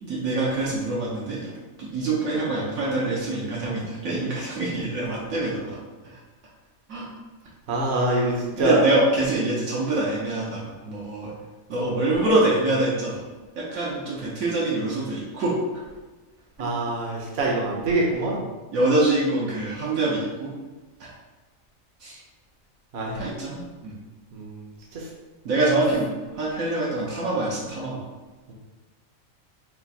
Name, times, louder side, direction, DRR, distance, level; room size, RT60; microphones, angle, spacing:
voice 1, 0.0-1.5 1.8-5.8 6.0-6.2 6.9-7.1 8.6-11.3 11.7-13.2 13.6-15.5 16.6-16.8 18.7-20.5 21.0-21.1 22.0-22.2 23.1-24.0 25.4-28.0, right 2 dB, 75° right, -6 dB, 1.3 m, -25 dB
voice 2, 7.7-8.8 16.6-18.4 22.9-23.2 24.3-24.7 24.9-25.0, right 2 dB, 55° right, -3 dB, 1.0 m, -24 dB
4.4 x 2.4 x 4.0 m, 1.3 s
omnidirectional pair, 1.5 m